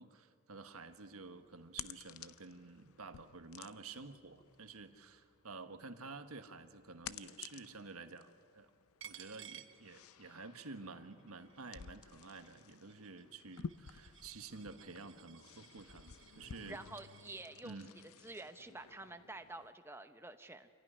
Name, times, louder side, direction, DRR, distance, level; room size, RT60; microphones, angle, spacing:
voice 1, 0.0-8.7 9.0-16.8 17.6-17.9, right 3 dB, 80° right, 8 dB, 1.4 m, -51 dB
sound 1, 0.8-19.7, left 7 dB, 80° left, 0.6 m, -54 dB
Coin (dropping), 9.0-10.5 10.9-17.5, right 9 dB, 60° right, 1.2 m, -58 dB
voice 2, 16.7-17.8 18.2-20.7, right 2 dB, 10° right, 8 dB, 0.9 m, -49 dB
26.5 x 16.5 x 10.0 m, 2.1 s
head